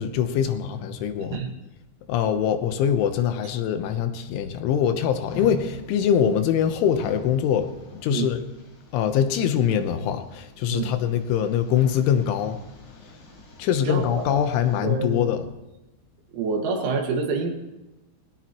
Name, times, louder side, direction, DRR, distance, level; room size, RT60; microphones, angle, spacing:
voice 1, 0.0-1.4 2.1-7.7 8.0-8.4 8.9-12.6 13.6-15.5, left 8 dB, 85° left, 8 dB, 3.5 m, -23 dB
sound 1, 5.2-14.8, left 1 dB, 70° left, 6.7 m, -44 dB
voice 2, 13.8-14.2 14.8-15.2 16.3-17.5, right 4 dB, 85° right, 2 dB, 4.4 m, -27 dB
21.0 x 17.0 x 3.1 m, 1.0 s
omnidirectional pair, 5.3 m